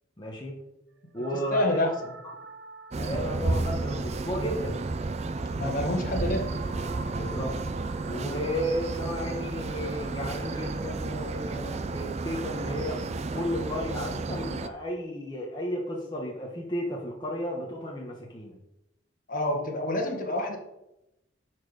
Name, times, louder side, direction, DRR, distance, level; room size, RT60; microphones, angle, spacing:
voice 1, 0.2-0.6 1.1-1.9 2.9-4.8 7.1-7.7 8.1-18.5, equal, 25° left, -1 dB, 1.2 m, -33 dB
sound 1, 1.1-11.3, right 3 dB, 70° right, 1.1 m, -47 dB
voice 2, 1.5-2.0 5.5-6.5 19.3-20.6, left 1 dB, 45° left, 3 dB, 1.5 m, -27 dB
sound 2, 2.9-14.7, right 3 dB, 35° right, 0.4 m, -32 dB
11.5 x 4.6 x 4.9 m, 0.89 s
head